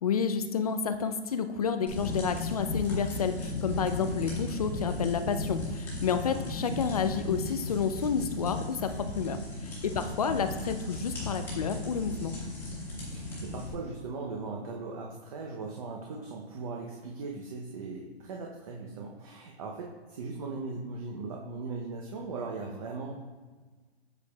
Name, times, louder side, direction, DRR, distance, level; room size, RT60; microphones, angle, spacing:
voice 1, 0.0-9.4 9.8-12.3, left 6 dB, 35° left, 8 dB, 0.4 m, -30 dB
sound 1, 1.9-13.7, left 2 dB, 5° left, 1.6 m, -36 dB
voice 2, 6.1-6.4 9.9-10.1 13.1-23.1, right 4 dB, 35° right, -1 dB, 0.7 m, -39 dB
8.2 x 6.7 x 2.3 m, 1.4 s
hypercardioid pair, 155°, 33 cm